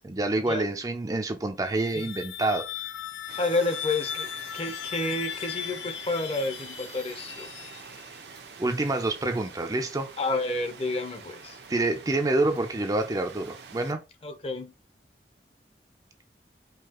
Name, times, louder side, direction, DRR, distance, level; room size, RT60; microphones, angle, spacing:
voice 1, 0.0-2.7 8.6-10.1 11.7-14.0, right 2 dB, 20° right, 0.4 m, -27 dB
sound 1, 1.6-8.2, left 10 dB, 90° left, 0.4 m, -38 dB
sound 2, 3.3-13.9, right 5 dB, 70° right, 0.7 m, -46 dB
voice 2, 3.4-4.3 4.5-7.5 10.2-11.6 14.2-14.7, left 2 dB, 35° left, 0.6 m, -30 dB
4.8 x 2.8 x 2.9 m
head